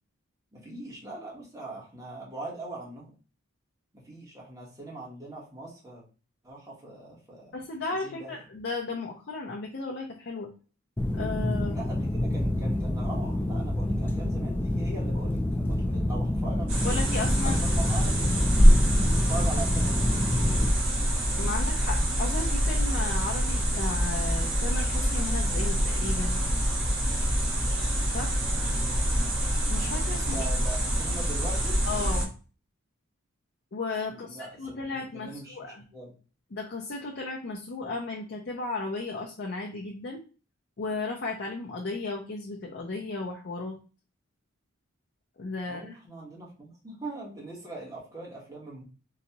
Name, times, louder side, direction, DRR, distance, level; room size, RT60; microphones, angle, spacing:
voice 1, 0.5-3.1 3.9-6.0 6.4-7.5 8.0-8.4 11.7-16.7 17.4-18.7 19.2-20.2 28.7-29.1 30.3-31.8 34.1-35.6 35.9-36.1 45.7-48.8, right 2 dB, 15° right, -4 dB, 1.2 m, -41 dB
voice 2, 7.5-10.5 11.1-11.9 16.8-17.6 21.4-26.4 28.1-28.4 29.2-29.3 29.7-30.5 31.9-32.3 33.7-35.8 36.5-40.2 40.8-43.8 45.4-46.0, left 3 dB, 55° left, -1 dB, 0.6 m, -35 dB
sound 1, 11.0-20.7, left 1 dB, 10° left, 0.3 m, -28 dB
sound 2, 16.7-32.3, equal, 85° right, 1.6 m, -25 dB
4.0 x 2.4 x 2.8 m, 0.35 s
head